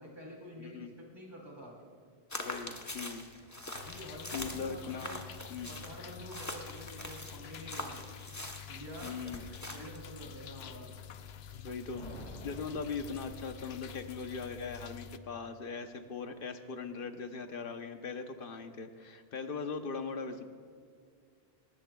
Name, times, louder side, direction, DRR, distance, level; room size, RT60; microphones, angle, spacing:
voice 1, 0.0-1.7 3.7-5.2 5.7-8.1 8.7-9.1 9.7-10.9, equal, 25° right, -3 dB, 3.4 m, -48 dB
voice 2, 0.6-0.9 2.4-3.3 4.3-5.1 5.5-5.7 9.0-9.4 11.6-20.4, left 5 dB, 60° left, 7 dB, 1.1 m, -40 dB
sound 1, 2.3-10.0, left 1 dB, 15° left, 1.1 m, -44 dB
sound 2, 3.7-15.2, left 9 dB, 80° left, 0.9 m, -48 dB
sound 3, 11.9-13.9, left 1 dB, 40° left, 2.0 m, -48 dB
20.5 x 19.5 x 2.3 m, 2.2 s
omnidirectional pair, 1.0 m